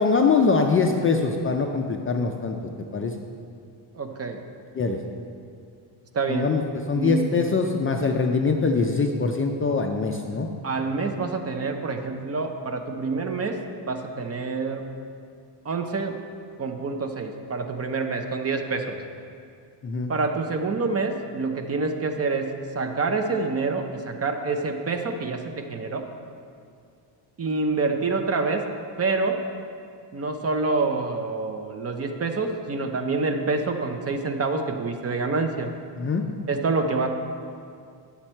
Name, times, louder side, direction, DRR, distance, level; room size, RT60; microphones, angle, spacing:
voice 1, 0.0-3.1 4.7-5.0 6.3-6.6 6.9-10.5 19.8-20.1 36.0-36.3, left 4 dB, 30° left, 3 dB, 0.4 m, -23 dB
voice 2, 3.9-4.4 6.1-6.5 6.9-7.5 10.6-13.6 13.9-14.9 15.6-16.2 16.6-19.0 20.1-26.1 27.4-28.7 29.0-29.4 30.1-35.7 36.5-37.1, right 3 dB, 30° right, 5 dB, 0.6 m, -27 dB
10.5 x 7.2 x 4.4 m, 2.3 s
cardioid pair, 140°, 49 cm